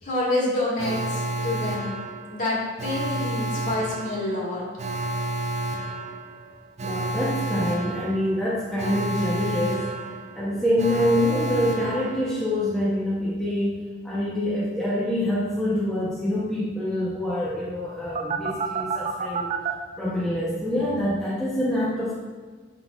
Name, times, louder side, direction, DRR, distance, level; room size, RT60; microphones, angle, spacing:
voice 1, 0.0-1.9 2.3-4.6, left 2 dB, 40° left, -5 dB, 1.8 m, -27 dB
Alarm, 0.8-12.7 18.2-19.7, right 2 dB, 35° right, 0.4 m, -30 dB
voice 2, 6.8-9.9 10.3-19.6 20.0-22.2, left 1 dB, 5° left, -8 dB, 0.7 m, -26 dB
10.5 x 3.9 x 2.3 m, 1.4 s
head